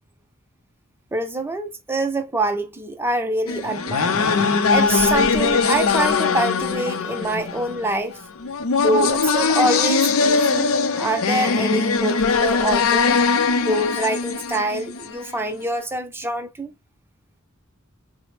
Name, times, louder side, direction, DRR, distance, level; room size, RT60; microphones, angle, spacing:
voice 1, 1.1-4.2 4.7-8.2 8.8-10.7 11.0-13.2 13.6-16.7, right 2 dB, 10° right, 0.5 m, -25 dB
sound 1, 3.5-15.3, left 5 dB, 75° left, 0.5 m, -21 dB
3.9 x 2.0 x 3.1 m
head